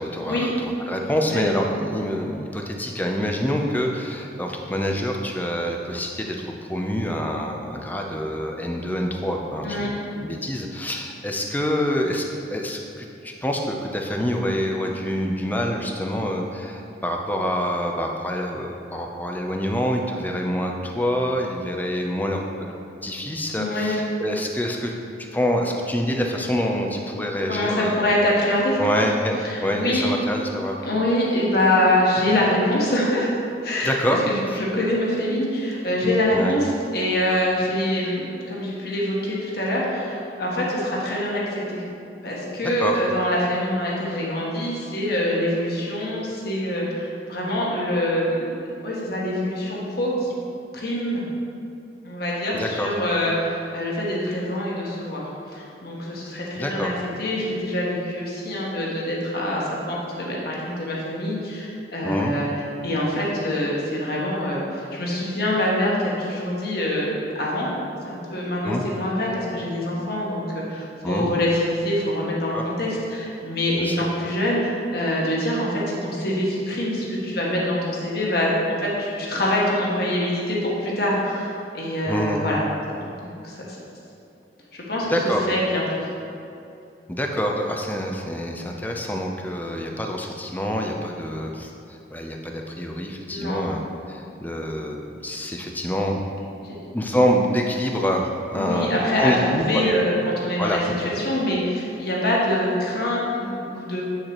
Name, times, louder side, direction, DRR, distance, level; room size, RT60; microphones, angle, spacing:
voice 1, 0.0-24.9 25.3-28.0 28.8-29.4 29.6-30.8 33.8-34.2 36.3-36.6 42.6-43.0 52.5-52.9 56.6-56.9 62.0-62.3 68.6-68.8 71.0-71.3 72.5-72.6 73.8-74.1 82.1-82.5 85.1-85.4 87.1-93.8 94.1-96.2 96.5-99.9 100.6-100.8, equal, 10° left, 1 dB, 0.5 m, -26 dB
voice 2, 23.5-24.0 27.5-28.8 29.4-30.1 30.8-33.3 33.6-34.0 34.7-41.8 42.2-48.5 48.8-50.3 50.7-51.3 52.0-56.9 57.2-62.5 62.8-67.7 68.0-82.6 83.1-83.8 84.9-85.1 85.5-86.0 93.3-93.6 96.6-96.7 98.5-104.0, left 1 dB, 60° left, -4 dB, 1.3 m, -25 dB
8.0 x 6.5 x 3.0 m, 2.7 s
head